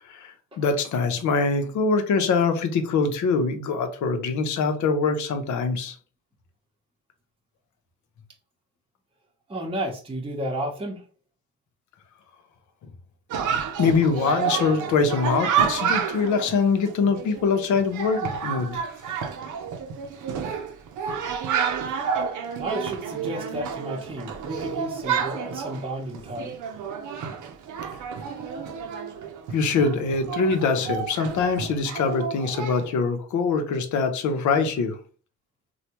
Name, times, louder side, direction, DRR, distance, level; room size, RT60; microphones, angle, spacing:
voice 1, 0.1-6.0 13.8-19.0 29.5-35.0, left 4 dB, 70° left, 7 dB, 0.8 m, -23 dB
voice 2, 9.5-11.0 19.1-19.2 22.6-26.6, right 1 dB, 20° right, 0 dB, 0.9 m, -32 dB
Chatter, 13.3-32.9, right 7 dB, 80° right, 0.6 m, -30 dB
3.2 x 2.3 x 2.9 m, 0.38 s
cardioid pair, 90°, 30 cm